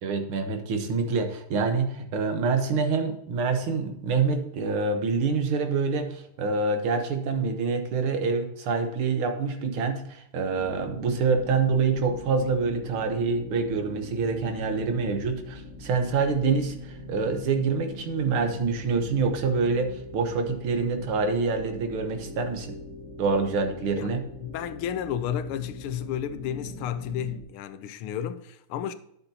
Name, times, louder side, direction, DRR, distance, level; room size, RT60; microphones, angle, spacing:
voice 1, 0.0-22.7 23.2-24.2, right 4 dB, 80° right, 2.0 m, -26 dB
sound 1, 10.6-27.4, left 2 dB, 60° right, 2.1 m, -42 dB
voice 2, 24.4-28.9, left 9 dB, 90° left, 1.6 m, -32 dB
12.0 x 6.6 x 2.8 m
omnidirectional pair, 2.3 m